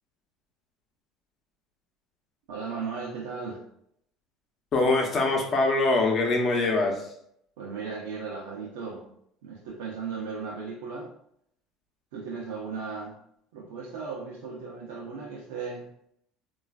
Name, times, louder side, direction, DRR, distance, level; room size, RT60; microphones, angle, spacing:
voice 1, 2.5-3.6 7.6-9.1 9.4-11.1 12.1-13.2 13.5-15.9, right 5 dB, 80° right, -2 dB, 0.6 m, -36 dB
voice 2, 4.7-7.1, left 2 dB, 40° left, 1 dB, 0.8 m, -23 dB
3.1 x 2.4 x 2.4 m, 0.71 s
supercardioid pair, 95°, 0 cm